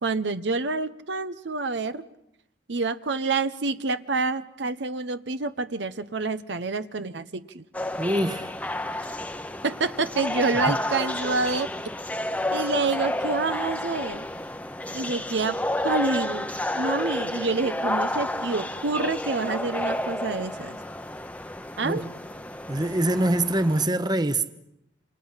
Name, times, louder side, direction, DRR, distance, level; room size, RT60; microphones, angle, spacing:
voice 1, 0.0-2.0 2.7-7.6 9.6-11.7 12.5-14.2 14.9-15.6 15.8-16.5 16.7-20.8 21.8-22.0, right 3 dB, 75° right, 0.9 m, -27 dB
sound 1, 7.7-23.9, left 1 dB, 10° left, 0.9 m, -31 dB
voice 2, 8.0-8.5 10.7-10.8 21.8-22.1 22.7-24.5, right 1 dB, 25° right, 1.0 m, -24 dB
28.5 x 27.5 x 5.7 m
head